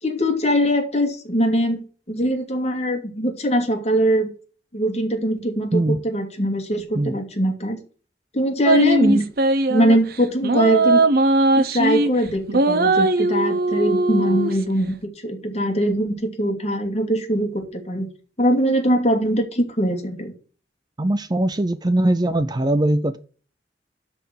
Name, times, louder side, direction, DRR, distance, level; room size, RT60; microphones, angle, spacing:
voice 1, 0.0-1.8 2.1-4.3 4.7-7.8 8.3-9.3 9.7-11.0 11.5-18.1 18.4-20.3, equal, 40° left, 2.6 m, -22 dB
sound 1, 8.7-10.0 10.4-12.1 12.5-14.5, right 2 dB, 60° right, 1.0 m, -19 dB
voice 2, 21.0-23.2, right 1 dB, 25° right, 0.5 m, -21 dB
12.5 x 4.2 x 7.7 m
head